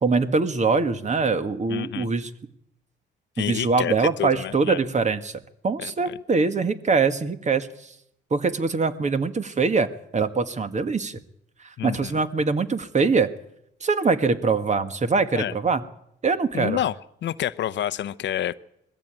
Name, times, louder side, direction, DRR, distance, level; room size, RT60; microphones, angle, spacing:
voice 1, 0.0-2.3 3.4-7.9 8.3-11.2 11.8-13.3 13.8-15.8 16.2-16.8, right 4 dB, 35° right, 10 dB, 1.8 m, -23 dB
voice 2, 1.7-2.1 3.4-3.9 4.2-4.8 5.8-6.2 11.8-12.2 15.3-15.5 16.5-17.0 17.2-18.6, left 11 dB, 65° left, 16 dB, 0.8 m, -29 dB
21.5 x 15.0 x 9.1 m, 0.75 s
cardioid pair, 90°, 20 cm